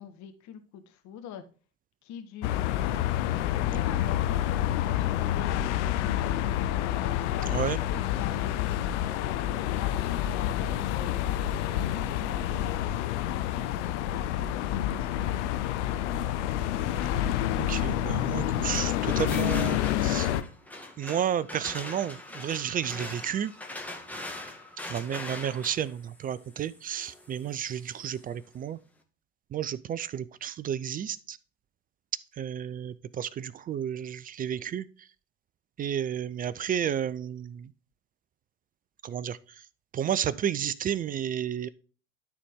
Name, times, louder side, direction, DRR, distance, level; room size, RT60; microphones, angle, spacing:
voice 1, 0.0-1.4 2.0-2.7 3.4-4.6 5.0-6.7 7.3-9.4 9.8-11.2 11.9-12.9 13.3-15.4, left 9 dB, 45° left, 1.5 m, -44 dB
sound 1, 2.4-20.4, left 12 dB, 65° left, 0.8 m, -28 dB
voice 2, 17.7-20.3 21.0-23.5 24.9-28.8 29.5-31.4 32.4-34.9 35.8-37.7 39.0-39.4 39.9-41.7, right 9 dB, 25° right, 0.4 m, -31 dB
sound 2, 18.5-28.3, left 2 dB, 5° left, 1.7 m, -42 dB
12.0 x 4.1 x 3.6 m
hypercardioid pair, 75°, 38 cm